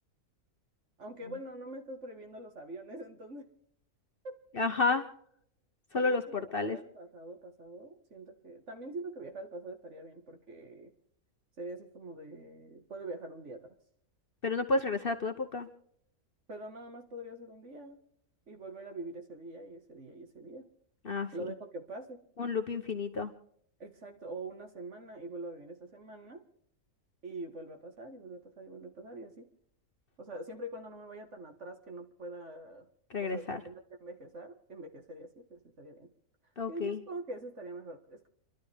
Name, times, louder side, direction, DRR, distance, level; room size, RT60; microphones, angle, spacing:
voice 1, 1.0-3.5 4.2-4.4 5.9-10.9 11.6-13.8 16.5-18.0 18.5-20.7 21.3-22.2 23.8-26.4 27.2-29.5 30.2-32.9 33.2-36.1 36.7-38.3, right 2 dB, 50° right, 4 dB, 2.1 m, -44 dB
voice 2, 4.5-5.0 5.9-6.8 14.4-15.7 21.0-21.3 22.4-23.3 33.1-33.6 36.6-37.0, left 3 dB, 40° left, 7 dB, 1.1 m, -31 dB
29.5 x 12.0 x 3.6 m, 0.71 s
omnidirectional pair, 1.6 m